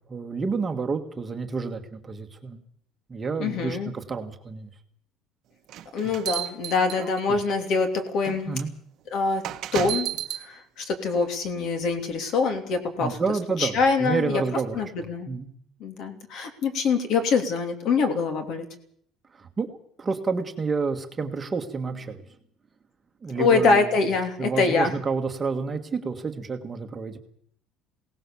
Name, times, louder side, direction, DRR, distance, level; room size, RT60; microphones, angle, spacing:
voice 1, 0.1-2.6 3.1-4.7 6.0-6.1 8.5-8.7 13.0-14.8 15.3-15.5 19.3-22.2 23.2-23.8 24.4-27.2, right 4 dB, 20° right, 5 dB, 1.6 m, -29 dB
voice 2, 3.4-3.9 5.9-8.6 9.1-10.1 10.4-13.2 13.6-14.4 14.7-15.3 15.8-18.7 23.4-24.9, left 4 dB, 50° left, 7 dB, 3.0 m, -24 dB
sound 1, 5.7-7.5 8.2-8.4 9.4-10.4, right 12 dB, 45° right, 1.3 m, -32 dB
22.5 x 18.0 x 7.0 m, 0.66 s
cardioid pair, 165°, 0 cm